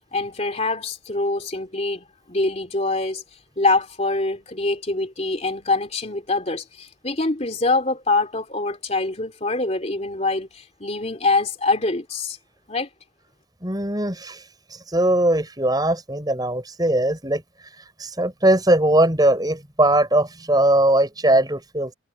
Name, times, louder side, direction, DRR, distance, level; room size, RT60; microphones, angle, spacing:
voice 1, 0.1-3.2 3.6-12.4 12.7-12.9, left 3 dB, 35° left, 3.1 m, -24 dB
voice 2, 13.6-14.4 14.9-17.4 18.0-21.9, right 1 dB, 20° right, 6.9 m, -20 dB
head